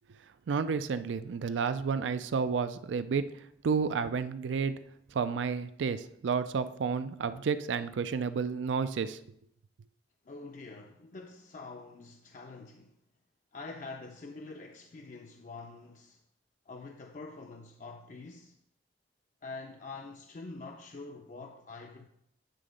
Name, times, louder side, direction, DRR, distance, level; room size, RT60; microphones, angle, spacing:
voice 1, 0.5-4.8 5.1-9.2, right 5 dB, 85° right, 0.4 m, -31 dB
voice 2, 10.2-13.0 13.5-16.2 16.7-18.6 19.4-22.1, left 3 dB, 45° left, 0.4 m, -46 dB
9.1 x 3.8 x 5.1 m
head